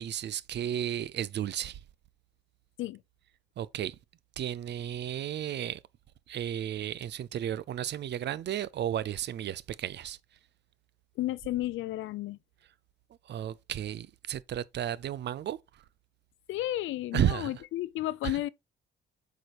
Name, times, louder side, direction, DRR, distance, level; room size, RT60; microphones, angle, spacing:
voice 1, 0.0-1.8 3.6-4.0 4.4-5.8 6.3-10.2 13.2-15.8 17.1-17.6 18.2-18.4, right 11 dB, 60° right, 0.6 m, -33 dB
voice 2, 11.2-12.4 16.5-18.5, left 15 dB, 80° left, 0.5 m, -32 dB
8.0 x 4.9 x 2.9 m
cardioid pair, 90°, 20 cm